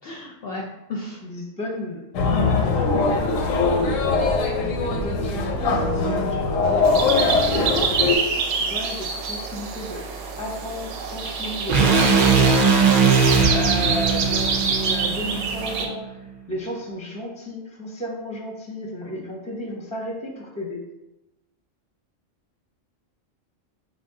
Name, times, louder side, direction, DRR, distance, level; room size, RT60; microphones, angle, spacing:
voice 1, 0.0-1.2 7.5-7.9, left 2 dB, 60° left, -1 dB, 0.6 m, -34 dB
voice 2, 1.2-3.2 3.8-6.7 7.2-7.7 8.6-10.0 10.4-12.7 13.5-16.2 16.5-20.8, equal, 10° left, -1 dB, 0.6 m, -33 dB
sound 1, 2.1-8.2, left 3 dB, 85° left, 1.0 m, -21 dB
sound 2, 6.8-15.9, right 5 dB, 90° right, 1.0 m, -27 dB
sound 3, 11.7-15.9, right 5 dB, 55° right, 0.6 m, -19 dB
5.2 x 2.2 x 3.6 m, 0.96 s
omnidirectional pair, 1.3 m